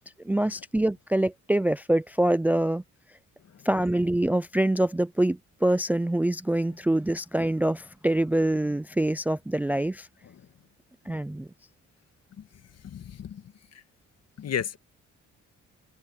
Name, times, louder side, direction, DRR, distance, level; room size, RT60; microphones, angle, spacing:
voice 1, 0.2-2.8 3.6-10.1 11.1-11.5, right 1 dB, 5° right, 0.4 m, -25 dB
voice 2, 12.8-13.8 14.4-14.8, left 8 dB, 55° left, 1.8 m, -35 dB
cardioid pair, 90°, 30 cm